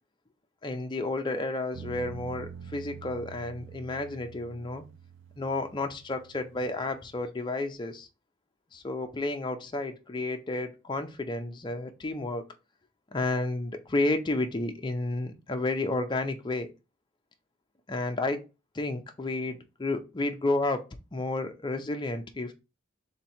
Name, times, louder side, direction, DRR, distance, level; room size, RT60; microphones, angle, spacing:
voice 1, 0.6-4.8 5.4-8.1 8.7-12.5 13.1-16.7 17.9-18.4 18.7-22.5, left 2 dB, 25° left, 0.5 m, -31 dB
sound 1, 1.7-7.3, right 7 dB, 65° right, 0.3 m, -46 dB
3.5 x 2.9 x 4.3 m
head